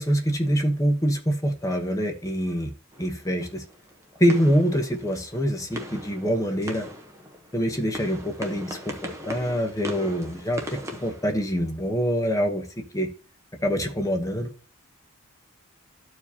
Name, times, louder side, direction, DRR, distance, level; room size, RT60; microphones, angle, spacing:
voice 1, 0.0-2.7 3.0-3.6 4.2-6.9 7.5-13.1 13.6-14.5, equal, 15° left, 4 dB, 1.0 m, -25 dB
sound 1, 2.9-12.0, equal, 15° right, 0.9 m, -40 dB
13.0 x 4.7 x 2.8 m, 0.37 s
head